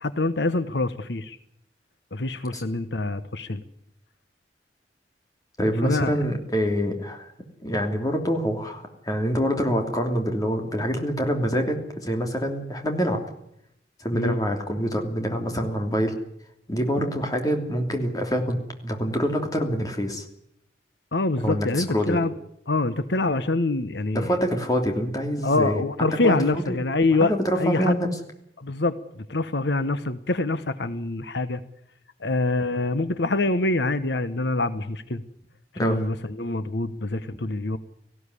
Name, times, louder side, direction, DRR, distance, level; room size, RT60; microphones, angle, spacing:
voice 1, 0.0-1.4 2.1-3.6 5.8-6.1 14.1-14.4 21.1-22.3 22.7-24.4 25.4-28.0 28.6-28.9 29.3-31.6 32.2-35.2 35.8-37.8, left 2 dB, 80° left, 13 dB, 1.1 m, -25 dB
voice 2, 5.6-7.3 7.6-13.2 14.0-16.1 16.7-20.2 21.4-22.2 24.1-26.8 27.2-28.1 35.8-36.0, equal, 20° left, 3 dB, 3.2 m, -26 dB
18.5 x 15.5 x 9.8 m, 0.75 s
head